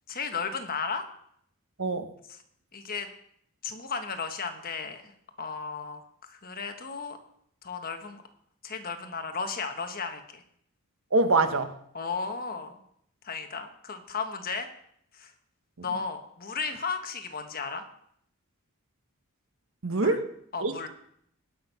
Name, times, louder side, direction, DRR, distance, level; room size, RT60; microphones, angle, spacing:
voice 1, 0.1-1.0 2.7-3.1 3.6-5.0 5.4-6.0 6.3-7.2 7.6-8.2 8.6-10.4 11.9-12.8 13.2-14.7 15.2-15.3 15.8-17.8 19.9-20.2 20.5-20.9, left 5 dB, 40° left, 6 dB, 1.2 m, -34 dB
voice 2, 11.1-11.7 19.8-20.3 20.6-20.9, right 3 dB, 65° right, 9 dB, 1.0 m, -24 dB
18.0 x 6.3 x 5.6 m, 0.70 s
head